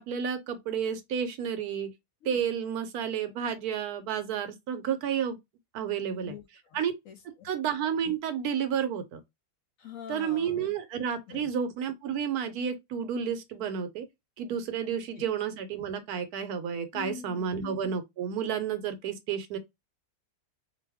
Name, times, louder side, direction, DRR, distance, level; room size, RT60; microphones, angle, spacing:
voice 1, 0.0-1.9 2.3-5.4 5.7-6.4 6.7-6.9 7.4-9.2 10.1-14.0 14.4-19.6, right 8 dB, 75° right, 1.1 m, -31 dB
voice 2, 6.1-7.5 9.8-10.7 11.3-11.5 15.2-15.3 16.9-17.5, left 9 dB, 65° left, 0.9 m, -44 dB
2.6 x 2.3 x 3.4 m
omnidirectional pair, 1.7 m